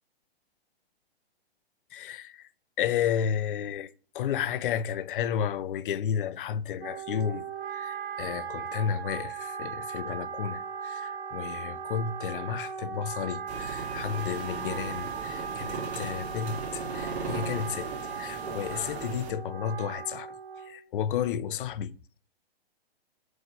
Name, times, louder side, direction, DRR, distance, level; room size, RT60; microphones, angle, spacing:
voice 1, 1.9-2.5 2.8-22.0, left 8 dB, 55° left, 0.5 m, -32 dB
Wind instrument woodwind instrument, 6.8-20.8, right 6 dB, 60° right, 1.7 m, -38 dB
sound 1, 13.5-19.3, right 4 dB, 40° right, 3.3 m, -38 dB
7.8 x 2.7 x 5.8 m
hypercardioid pair, 130°, 31 cm